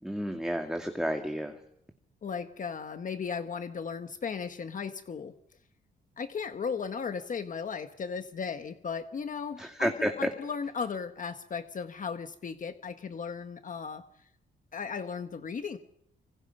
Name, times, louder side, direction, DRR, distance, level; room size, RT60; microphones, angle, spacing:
voice 1, 0.0-1.6 9.6-10.1, equal, 5° right, 4 dB, 2.3 m, -31 dB
voice 2, 2.2-5.3 6.2-14.0 14.7-15.8, left 6 dB, 45° left, 8 dB, 1.4 m, -36 dB
27.0 x 26.0 x 5.5 m, 0.76 s
cardioid pair, 95°, 18 cm